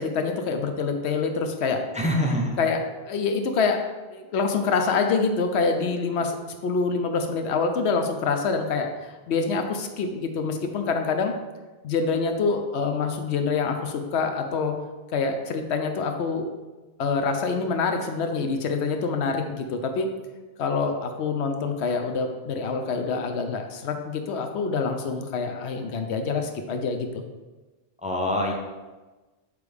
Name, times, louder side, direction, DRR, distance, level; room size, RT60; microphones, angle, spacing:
voice 1, 0.0-1.8 2.6-3.8 4.1-6.3 6.6-8.9 9.3-11.3 11.8-14.7 15.1-16.5 17.0-20.1 20.6-27.1, left 4 dB, 90° left, 5 dB, 0.9 m, -26 dB
voice 2, 1.9-2.6 28.0-28.5, left 1 dB, 10° right, 0 dB, 0.6 m, -24 dB
8.0 x 3.4 x 3.4 m, 1.2 s
omnidirectional pair, 1.1 m